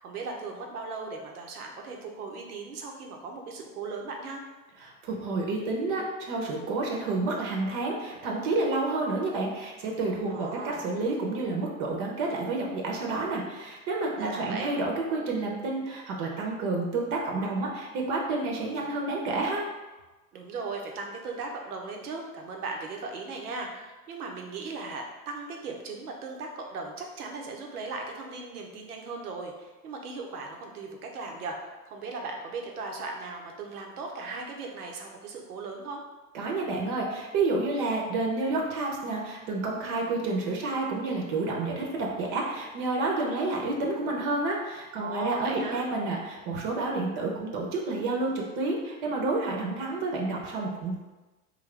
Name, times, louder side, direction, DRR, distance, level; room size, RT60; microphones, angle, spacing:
voice 1, 0.0-4.4 10.3-10.8 14.1-14.7 20.3-36.0 45.0-45.8, right 3 dB, 80° right, 1 dB, 0.9 m, -37 dB
voice 2, 4.8-19.6 36.3-51.0, right 3 dB, 55° right, -1 dB, 0.9 m, -29 dB
3.8 x 2.7 x 3.2 m, 1.2 s
hypercardioid pair, 95°, 45 cm